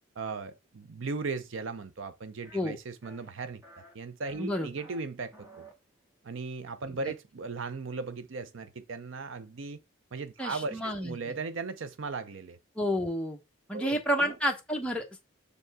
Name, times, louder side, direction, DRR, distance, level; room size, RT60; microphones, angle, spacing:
voice 1, 0.2-5.6 6.2-9.8 10.1-12.6 13.7-14.3, right 4 dB, 75° right, 0.6 m, -37 dB
sound 1, 2.4-2.6 3.0-3.3 3.6-3.9 4.2-5.0 5.3-5.7, right 2 dB, 15° right, 1.6 m, -52 dB
voice 2, 4.4-4.7 10.4-11.2 12.7-13.4 13.7-15.2, equal, 5° left, 1.0 m, -30 dB
6.4 x 5.3 x 3.5 m
head